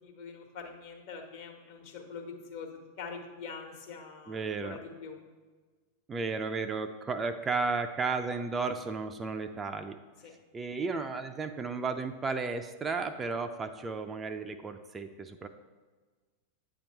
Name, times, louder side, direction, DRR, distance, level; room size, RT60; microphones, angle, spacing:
voice 1, 0.0-2.7 3.0-5.2 10.2-10.3, left 5 dB, 50° left, 1 dB, 1.2 m, -44 dB
voice 2, 4.3-4.8 6.1-10.0 10.5-15.5, right 4 dB, 20° right, 7 dB, 0.4 m, -33 dB
8.6 x 2.9 x 5.3 m, 1.4 s
figure-of-eight pair, 90°, 0 cm